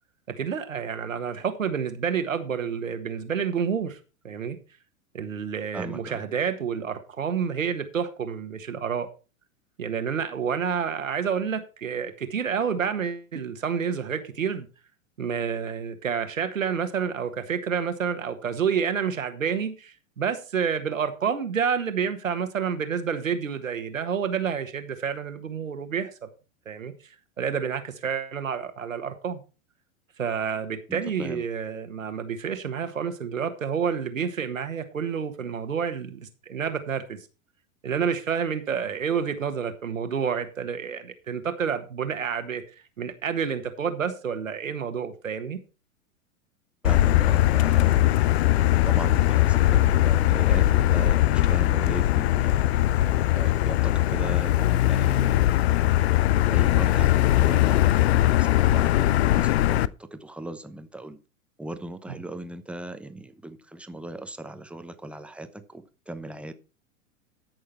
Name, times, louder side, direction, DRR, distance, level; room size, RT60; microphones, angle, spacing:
voice 1, 0.4-4.6 5.1-9.1 9.8-14.7 15.2-26.3 26.6-26.9 27.4-29.4 30.2-37.2 37.8-42.6 43.0-45.6, right 7 dB, 75° right, 1.6 m, -29 dB
voice 2, 5.7-6.2 30.9-31.4 46.8-48.4 48.8-52.8 53.3-55.7 56.5-61.2 61.6-66.5, right 1 dB, 5° right, 0.9 m, -38 dB
Motor vehicle (road), 46.8-59.9, left 14 dB, 55° left, 0.5 m, -20 dB
13.5 x 6.4 x 4.4 m
figure-of-eight pair, 95°, 40 cm